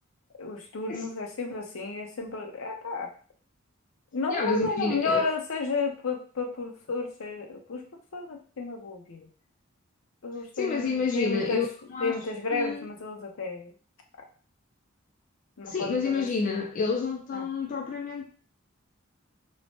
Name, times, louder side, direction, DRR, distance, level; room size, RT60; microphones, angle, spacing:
voice 1, 0.4-3.1 4.1-7.8 8.1-9.3 10.2-11.6 12.0-13.7 15.6-16.3 17.3-17.5, left 4 dB, 80° left, 0.6 m, -32 dB
voice 2, 4.3-5.3 10.6-11.7 11.9-12.1 12.5-12.9 15.6-18.3, left 5 dB, 40° left, 0.3 m, -29 dB
3.0 x 2.0 x 2.8 m
head